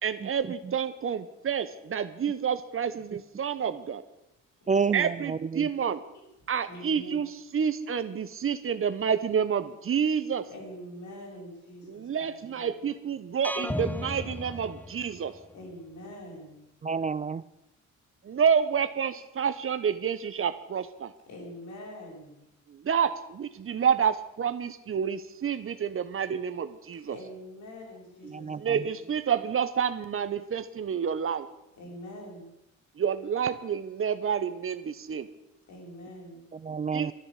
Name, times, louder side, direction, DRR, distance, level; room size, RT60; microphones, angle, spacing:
voice 1, 0.0-4.0 4.9-6.0 6.5-7.3 7.5-10.5 11.8-15.4 18.2-21.1 22.7-27.2 28.6-31.5 33.0-35.3 36.9-37.1, right 7 dB, 45° right, 12 dB, 1.1 m, -29 dB
voice 2, 4.7-5.7 16.8-17.4 28.2-28.9 36.5-37.1, right 5 dB, 25° right, 16 dB, 0.5 m, -30 dB
voice 3, 6.7-7.2 10.5-12.8 15.5-16.6 21.3-22.4 27.1-29.0 31.8-32.5 35.7-36.4, equal, 70° left, -1 dB, 6.9 m, -44 dB
sound 1, 13.4-15.4, left 1 dB, 5° left, 0.8 m, -35 dB
13.0 x 10.5 x 8.3 m, 0.87 s
cardioid pair, 90°, 30 cm